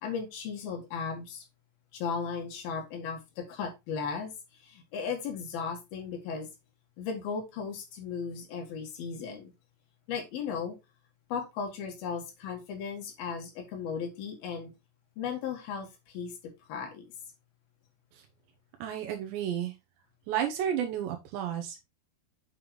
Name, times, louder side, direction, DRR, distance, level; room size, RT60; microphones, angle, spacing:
voice 1, 0.0-1.4 1.9-4.3 4.6-6.5 7.0-9.5 10.1-10.8 11.3-14.7 15.2-17.1, left 6 dB, 65° left, 3.4 m, -36 dB
voice 2, 18.8-19.7 20.3-21.9, right 10 dB, 80° right, 3.2 m, -32 dB
8.8 x 5.6 x 3.1 m
omnidirectional pair, 5.0 m